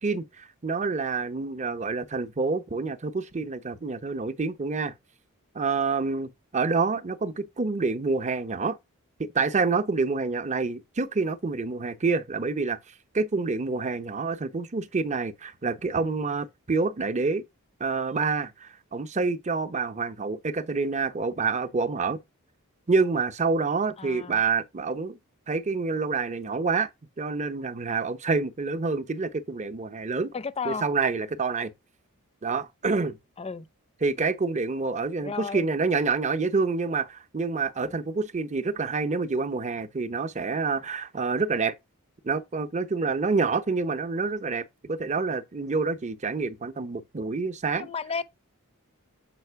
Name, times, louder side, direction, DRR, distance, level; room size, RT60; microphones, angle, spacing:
voice 1, 0.0-4.9 5.5-8.8 9.2-12.8 13.1-17.4 17.8-22.2 22.9-25.2 25.5-26.9 27.2-30.3 30.7-31.7 32.4-33.2 34.0-41.7 42.2-47.9, right 4 dB, 35° right, 0.7 m, -27 dB
voice 2, 24.0-24.4 30.3-30.8 33.4-33.7 35.2-35.7 47.8-48.2, left 5 dB, 25° left, 0.5 m, -33 dB
7.6 x 5.0 x 4.6 m
head